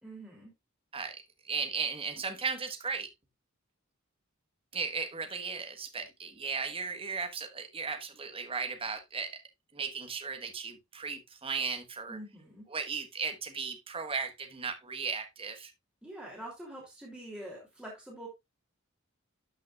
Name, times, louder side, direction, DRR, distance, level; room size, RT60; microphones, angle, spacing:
voice 1, 0.0-0.5 12.1-12.6 16.0-18.3, right 1 dB, 5° right, 2.9 m, -45 dB
voice 2, 0.9-3.1 4.7-9.4 9.7-12.2 12.7-15.7, right 5 dB, 25° right, 1.4 m, -36 dB
12.5 x 5.9 x 2.4 m
head